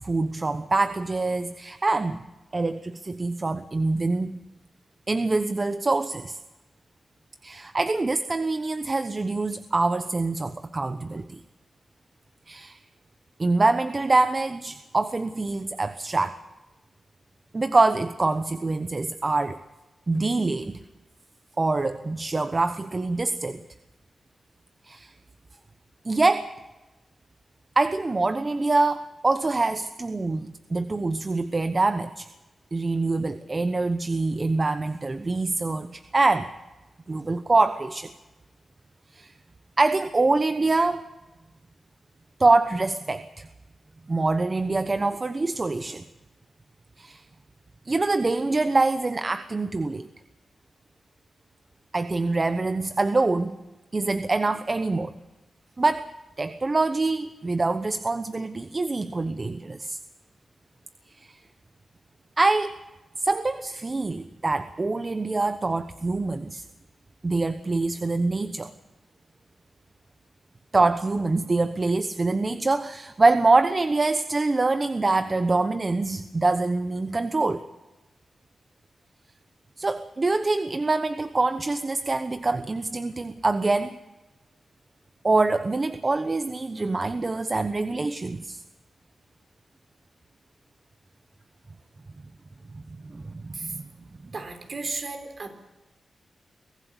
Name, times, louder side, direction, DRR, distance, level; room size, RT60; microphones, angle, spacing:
voice 1, 0.0-2.2 2.5-4.4 5.1-6.4 7.4-11.4 12.5-12.8 13.4-16.4 17.5-19.6 20.1-20.8 21.6-23.6 24.8-25.1 26.0-26.5 27.8-32.3 32.7-36.5 37.1-38.1 39.1-39.3 39.8-41.0 42.4-43.5 44.1-46.0 47.0-47.2 47.9-50.1 51.9-53.6 53.9-55.1 55.8-56.1 56.4-60.0 61.1-61.4 62.4-62.7 63.2-66.6 67.2-68.7 70.7-77.6 79.8-84.0 85.2-88.6 93.0-93.9, right 3 dB, 35° right, 11 dB, 1.1 m, -25 dB
voice 2, 94.3-95.5, right 3 dB, 55° right, 6 dB, 4.1 m, -34 dB
23.5 x 15.5 x 8.2 m, 1.1 s
cardioid pair, 65°, 0 cm